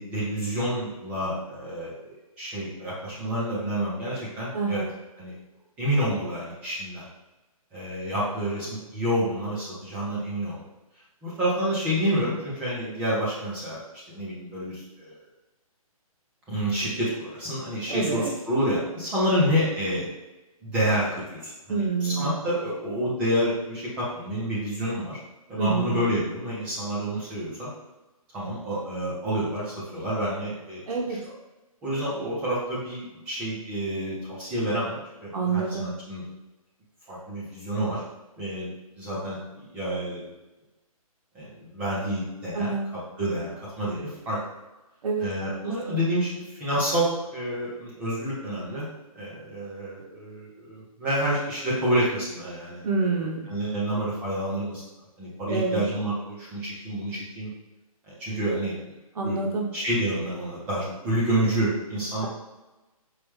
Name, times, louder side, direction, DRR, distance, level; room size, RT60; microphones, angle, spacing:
voice 1, 0.0-4.8 5.2-5.3 5.8-7.0 7.7-10.6 11.2-13.8 14.1-15.2 16.5-20.1 20.6-25.2 25.5-27.7 28.3-31.2 31.8-36.2 37.1-38.0 38.4-39.4 39.7-40.2 41.3-42.7 43.2-43.5 43.8-44.4 45.2-48.9 49.1-53.1 53.5-54.8 55.2-57.5 58.1-58.7 59.2-62.3, equal, 5° right, -8 dB, 0.4 m, -28 dB
voice 2, 4.5-4.9 17.9-18.3 21.7-22.3 25.6-26.0 30.9-31.2 35.3-35.9 42.5-42.9 45.0-46.0 52.8-53.5 55.5-55.8 59.2-59.7, right 4 dB, 75° right, 0 dB, 0.6 m, -27 dB
4.6 x 2.0 x 3.1 m, 1.1 s
hypercardioid pair, 160°, 19 cm